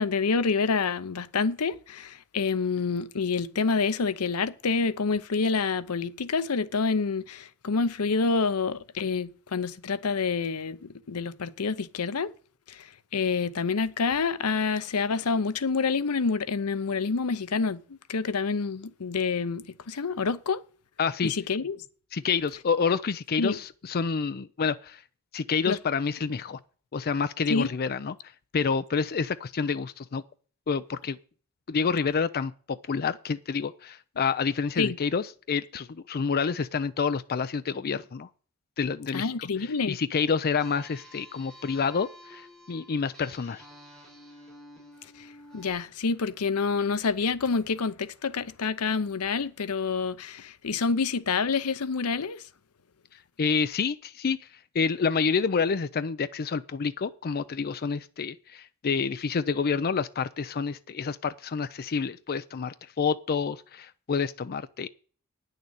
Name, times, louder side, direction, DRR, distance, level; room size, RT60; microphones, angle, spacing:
voice 1, 0.0-12.3 12.7-20.6 21.2-21.8 23.4-23.6 25.6-25.8 27.5-27.7 34.8-35.0 39.1-40.0 45.2-45.3 45.5-52.4, left 4 dB, 85° left, 0.7 m, -27 dB
voice 2, 21.0-21.3 22.1-25.0 25.3-26.6 26.9-28.1 28.5-30.2 30.7-31.2 31.7-38.3 38.8-39.3 39.6-43.6 53.1-64.9, left 5 dB, 45° left, 0.5 m, -28 dB
sound 1, 40.6-45.7, equal, 5° left, 4.4 m, -50 dB
9.6 x 6.7 x 8.9 m
head